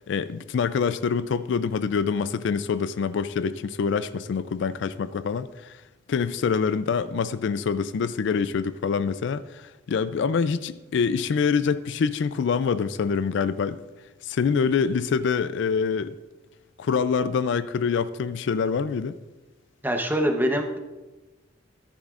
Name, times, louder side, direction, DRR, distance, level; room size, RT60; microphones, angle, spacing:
voice 1, 0.1-5.8 6.1-13.8 14.2-16.2 16.8-19.2, left 6 dB, 65° left, 0.3 m, -25 dB
voice 2, 19.8-20.8, equal, 10° right, 0.9 m, -24 dB
14.0 x 10.5 x 2.5 m
head